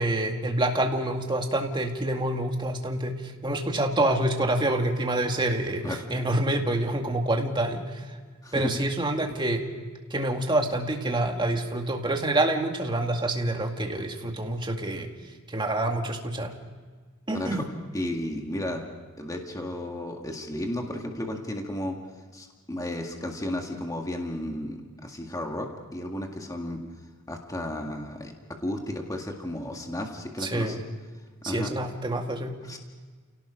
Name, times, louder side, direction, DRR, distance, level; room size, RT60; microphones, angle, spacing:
voice 1, 0.0-8.1 8.5-9.7 10.1-15.1 15.5-16.5 17.3-17.7 30.4-30.8 31.4-32.5, right 1 dB, 20° right, 2 dB, 2.2 m, -27 dB
voice 2, 17.9-18.8 19.2-22.0 22.3-26.8 27.3-28.3 28.6-30.8 31.5-31.7 32.6-32.8, left 1 dB, 15° left, 2 dB, 1.9 m, -33 dB
29.5 x 17.5 x 5.1 m, 1.5 s
head